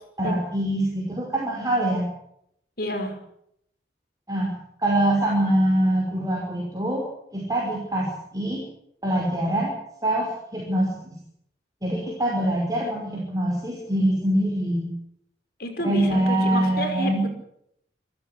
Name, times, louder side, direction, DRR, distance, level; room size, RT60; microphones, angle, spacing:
voice 1, 0.2-2.0 4.3-4.5 4.8-7.0 7.3-8.6 9.0-9.7 10.0-11.1 11.8-14.9 15.8-17.3, right 1 dB, 20° right, -2 dB, 5.7 m, -24 dB
voice 2, 2.8-3.2 15.6-17.3, equal, 55° left, 6 dB, 5.5 m, -29 dB
27.5 x 14.5 x 8.6 m, 0.74 s
head